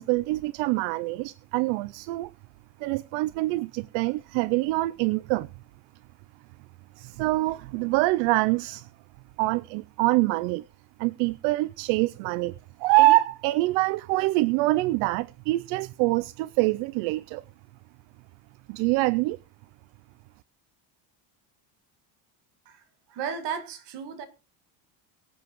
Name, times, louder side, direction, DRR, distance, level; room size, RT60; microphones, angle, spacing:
voice 1, 0.0-2.3 2.8-5.5 7.0-8.9 9.4-10.6 11.0-12.5 12.8-17.4 18.7-19.4, right 19 dB, 75° right, 0.5 m, -25 dB
voice 2, 23.1-24.3, right 7 dB, 55° right, 1.9 m, -34 dB
23.5 x 7.8 x 3.0 m
cardioid pair, 165°, 48 cm